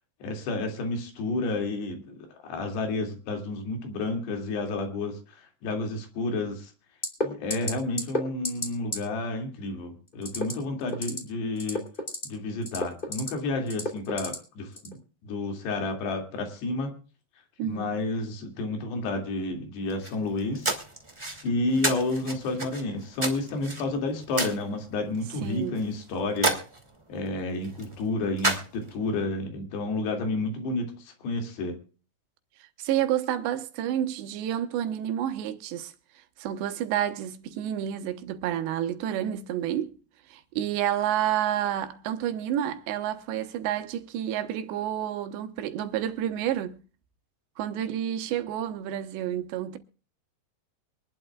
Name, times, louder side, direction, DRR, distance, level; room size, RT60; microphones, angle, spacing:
voice 1, 0.2-2.2 2.4-5.2 5.6-6.7 7.2-11.8 12.2-15.0 15.2-16.9 17.6-20.7 21.4-26.5 27.1-31.7, left 2 dB, 75° left, 4.5 m, -30 dB
sound 1, 7.0-7.2 7.5-7.7 8.0-8.2 8.4-8.7 8.9-9.0 10.2-10.5 10.9-11.2 11.6-12.2 12.6-13.3 13.7-14.3 14.8-14.9, left 1 dB, 15° left, 2.5 m, -29 dB
voice 2, 17.6-17.9 25.4-25.9 32.8-35.9 36.4-39.9 40.3-46.8 47.6-49.8, right 11 dB, 85° right, 3.3 m, -29 dB
sound 2, 19.9-29.2, right 2 dB, 15° right, 1.1 m, -33 dB
24.0 x 11.5 x 2.4 m
omnidirectional pair, 4.9 m